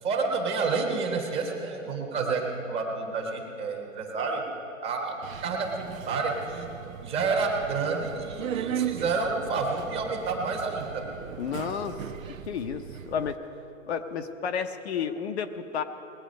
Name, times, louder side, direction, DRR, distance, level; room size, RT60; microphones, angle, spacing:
voice 1, 0.0-4.4 4.8-5.2 5.4-6.7 7.0-11.1, right 4 dB, 15° right, 1 dB, 1.1 m, -29 dB
Subway metro underground, 5.2-13.3, right 10 dB, 85° right, 0.7 m, -38 dB
voice 2, 11.4-12.0 12.5-13.4 13.9-15.8, left 7 dB, 55° left, 8 dB, 0.8 m, -31 dB
20.0 x 8.0 x 5.2 m, 3.0 s
hypercardioid pair, 150°, 40 cm